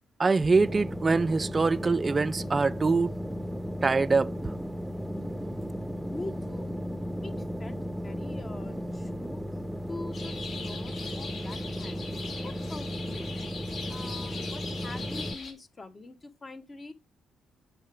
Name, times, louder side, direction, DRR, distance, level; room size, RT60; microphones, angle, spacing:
voice 1, 0.2-3.1 3.8-4.3, right 4 dB, 30° right, 0.4 m, -24 dB
sound 1, 0.5-15.3, equal, 5° right, 0.8 m, -35 dB
voice 2, 6.1-6.8 7.2-9.4 9.9-12.0 12.4-13.3 13.9-16.9, left 2 dB, 30° left, 1.2 m, -44 dB
sound 2, 10.1-15.5, left 4 dB, 60° left, 3.1 m, -41 dB
8.3 x 5.8 x 3.4 m
cardioid pair, 90°, 0 cm